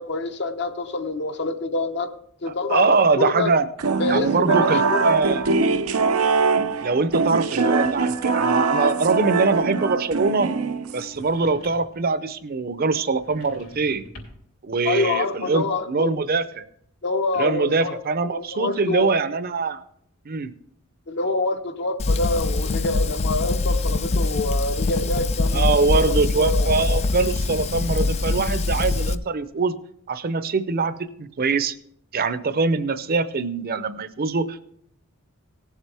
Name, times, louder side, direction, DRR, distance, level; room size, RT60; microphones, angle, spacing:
voice 1, 0.0-2.1 2.4-3.5 4.0-5.1 14.8-16.1 17.0-17.9 18.3-19.1 21.1-25.7 25.9-26.0 26.4-27.0, left 3 dB, 55° left, 7 dB, 0.8 m, -26 dB
voice 2, 2.5-3.7 4.1-5.5 6.8-10.5 10.9-14.0 14.6-16.7 17.3-19.8 20.3-20.5 25.5-29.7 30.1-31.7 32.1-34.7, right 4 dB, 45° right, 13 dB, 0.6 m, -23 dB
sound 1, 3.8-11.2, right 4 dB, 85° right, 0.6 m, -22 dB
sound 2, 11.1-12.0 13.1-14.6, left 1 dB, 75° left, 3.4 m, -45 dB
Fire, 22.0-29.1, left 2 dB, 30° left, 0.4 m, -23 dB
18.0 x 7.4 x 3.4 m, 0.68 s
head